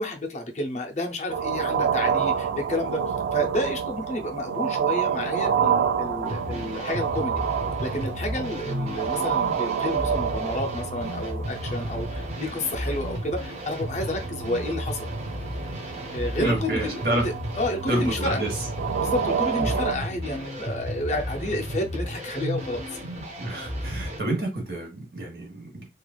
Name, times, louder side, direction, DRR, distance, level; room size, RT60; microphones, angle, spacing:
voice 1, 0.0-7.4 7.8-15.0 16.1-18.4 19.0-22.8, left 1 dB, 40° left, 0.5 m, -30 dB
sound 1, 1.3-20.0, right 7 dB, 85° right, 0.3 m, -29 dB
sound 2, 6.2-24.2, equal, 35° right, 0.6 m, -33 dB
voice 2, 16.4-17.3 17.9-18.5 19.6-19.8 23.4-25.9, right 1 dB, 55° right, 1.1 m, -28 dB
3.1 x 2.4 x 2.3 m
head